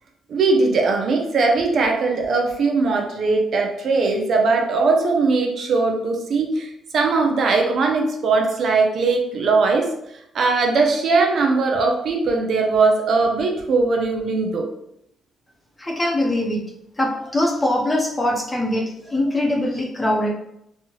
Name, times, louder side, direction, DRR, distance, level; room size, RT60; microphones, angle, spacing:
voice 1, 0.3-9.9 10.3-14.7, right 3 dB, 60° right, 2 dB, 0.5 m, -20 dB
voice 2, 15.8-16.6 17.0-20.3, left 1 dB, 20° left, -1 dB, 0.8 m, -22 dB
3.1 x 2.3 x 3.0 m, 0.78 s
cardioid pair, 90°, 0 cm